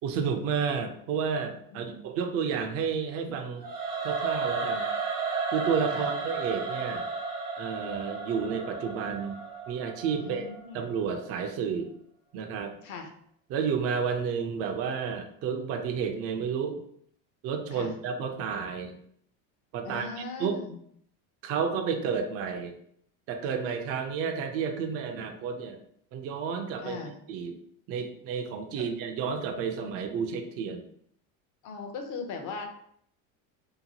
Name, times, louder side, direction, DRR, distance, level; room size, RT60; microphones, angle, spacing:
voice 1, 0.0-3.6 4.0-4.9 5.5-7.1 7.6-9.3 9.7-10.5 10.7-11.9 12.3-12.8 13.5-16.8 17.4-19.0 19.7-20.6 21.4-22.7 23.3-25.8 26.1-27.0 27.3-27.6 27.9-30.8, right 6 dB, 35° right, 5 dB, 0.4 m, -31 dB
voice 2, 1.7-2.0 2.4-2.5 5.9-6.1 10.2-10.9 12.8-13.1 17.7-17.9 19.8-20.8 26.8-27.1 31.6-32.6, left 4 dB, 45° left, 4 dB, 0.6 m, -39 dB
Singing / Musical instrument, 3.6-10.7, right 4 dB, 85° right, 0.8 m, -33 dB
2.8 x 2.2 x 2.8 m, 0.67 s
supercardioid pair, 120°, 42 cm